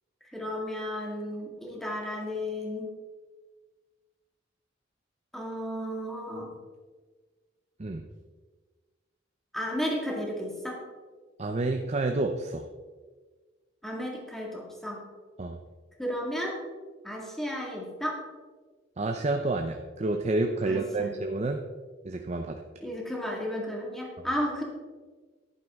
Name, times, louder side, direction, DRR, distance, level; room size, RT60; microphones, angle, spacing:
voice 1, 0.3-2.9 5.3-6.5 9.5-10.8 13.8-15.0 16.0-16.5 17.0-18.2 20.6-21.1 22.8-24.6, equal, ahead, -2 dB, 1.9 m, -33 dB
voice 2, 11.4-12.7 15.4-15.6 19.0-21.6 22.0-22.6, right 2 dB, 35° right, 5 dB, 0.6 m, -29 dB
11.0 x 9.4 x 3.6 m, 1.4 s
head